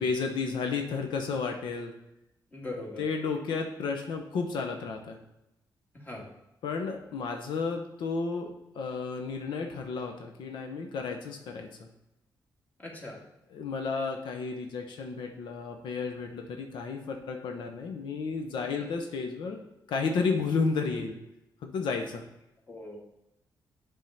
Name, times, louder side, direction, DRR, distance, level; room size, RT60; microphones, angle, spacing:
voice 1, 0.0-1.9 3.0-5.2 6.6-11.9 13.5-19.6 19.9-21.2 21.6-22.2, left 4 dB, 90° left, 4 dB, 0.8 m, -32 dB
voice 2, 2.5-3.0 5.9-6.3 12.8-13.2 18.8-18.9 22.7-23.0, left 2 dB, 25° left, -2 dB, 1.8 m, -40 dB
7.4 x 3.6 x 5.5 m, 0.89 s
cardioid pair, 115°, 8 cm